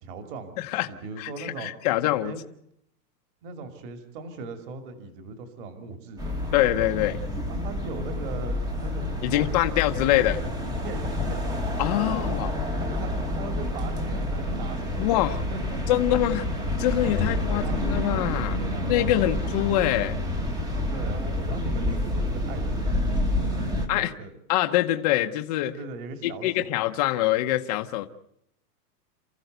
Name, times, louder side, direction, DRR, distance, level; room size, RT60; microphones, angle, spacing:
voice 1, 0.0-1.7 2.2-2.4 3.4-6.6 7.4-10.5 10.8-12.3 12.6-15.2 15.5-16.0 17.2-17.8 18.5-19.4 20.9-24.3 25.6-26.7, right 3 dB, 35° right, 7 dB, 2.6 m, -40 dB
voice 2, 0.6-0.9 1.2-2.3 6.5-7.2 9.2-10.4 11.8-12.5 15.0-15.4 15.9-16.4 16.8-18.6 18.9-20.2 23.9-24.1 24.5-25.7 26.2-28.1, left 14 dB, 25° left, 5 dB, 0.9 m, -24 dB
sound 1, 6.2-23.9, left 1 dB, 10° right, 1.2 m, -28 dB
28.5 x 15.0 x 8.0 m, 0.74 s
supercardioid pair, 175°, 47 cm